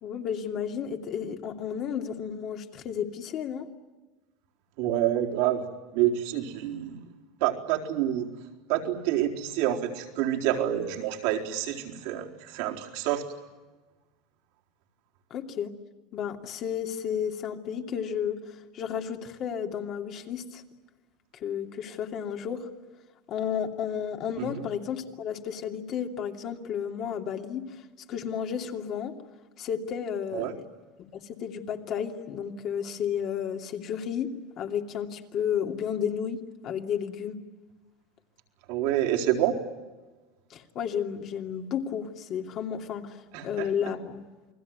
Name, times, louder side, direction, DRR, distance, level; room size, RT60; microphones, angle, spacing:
voice 1, 0.0-3.7 15.3-15.7 16.1-20.6 21.3-22.7 23.3-27.8 28.1-29.1 29.6-30.5 31.0-31.1 31.4-34.3 34.6-36.4 36.6-37.4 40.5-43.2 43.4-44.2, left 8 dB, 45° left, 3 dB, 2.7 m, -32 dB
voice 2, 4.8-5.6 5.9-7.0 7.4-8.3 8.7-13.2 24.4-24.6 30.3-30.5 38.7-39.6 43.3-43.7, right 12 dB, 70° right, 1 dB, 4.2 m, -27 dB
29.5 x 20.5 x 9.5 m, 1.2 s
supercardioid pair, 130°, 0 cm